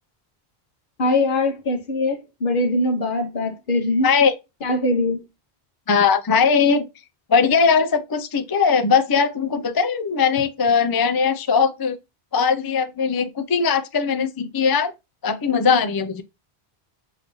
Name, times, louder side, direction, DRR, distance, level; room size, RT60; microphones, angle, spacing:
voice 1, 1.0-4.1 4.6-5.2, left 2 dB, 55° left, 1.0 m, -22 dB
voice 2, 4.0-4.3 5.9-6.9 7.3-12.0 12.3-14.9 15.2-16.2, left 5 dB, 35° left, 0.3 m, -19 dB
6.5 x 2.6 x 3.0 m
omnidirectional pair, 1.1 m